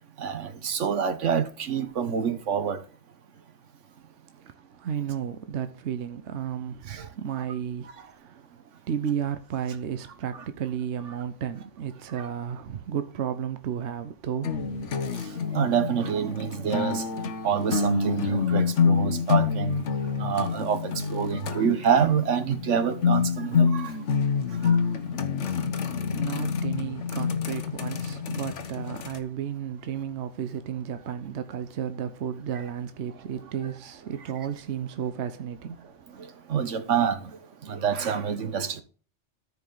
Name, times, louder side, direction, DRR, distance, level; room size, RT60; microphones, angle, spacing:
voice 1, 0.2-2.8 6.9-7.1 8.0-8.1 15.3-17.0 17.4-19.8 20.2-23.9 24.5-24.8 36.2-37.3 37.6-38.8, right 7 dB, 90° right, 1.4 m, -27 dB
voice 2, 4.4-8.4 8.9-14.9 26.1-35.8, right 8 dB, 70° right, 1.0 m, -33 dB
sound 1, 14.4-29.2, left 5 dB, 80° left, 1.3 m, -27 dB
13.5 x 4.9 x 3.9 m
omnidirectional pair, 1.2 m